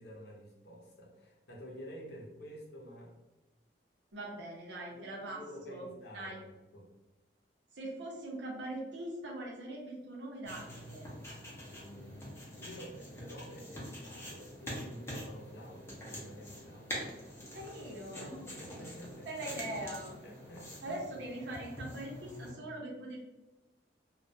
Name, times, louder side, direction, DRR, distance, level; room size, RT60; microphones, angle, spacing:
voice 1, 0.0-3.1 4.9-6.9 11.5-17.1 18.6-19.3 20.2-21.0, equal, 70° left, -2 dB, 0.6 m, -50 dB
voice 2, 4.1-5.4 5.7-5.9 6.1-6.4 7.7-11.2 17.5-18.5 19.3-20.2 20.8-23.3, right 1 dB, 85° right, -2 dB, 0.7 m, -42 dB
sound 1, 10.4-22.5, equal, 15° left, 0.5 m, -45 dB
2.2 x 2.1 x 2.6 m, 1.0 s
head